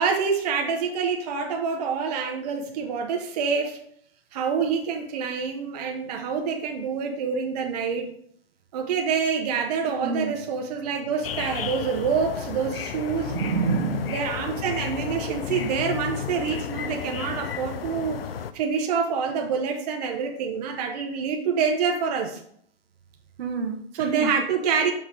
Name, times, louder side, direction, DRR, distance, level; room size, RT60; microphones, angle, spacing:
voice 1, 0.0-3.8 4.3-8.1 8.7-13.3 14.1-18.2 18.5-22.4 24.0-24.9, right 6 dB, 40° right, 2 dB, 0.9 m, -26 dB
voice 2, 9.9-10.3 13.3-14.2 23.4-24.3, right 5 dB, 75° right, 5 dB, 1.2 m, -28 dB
sound 1, 11.2-18.5, left 8 dB, 70° left, 0.6 m, -33 dB
5.6 x 4.2 x 4.8 m, 0.67 s
hypercardioid pair, 155°, 30 cm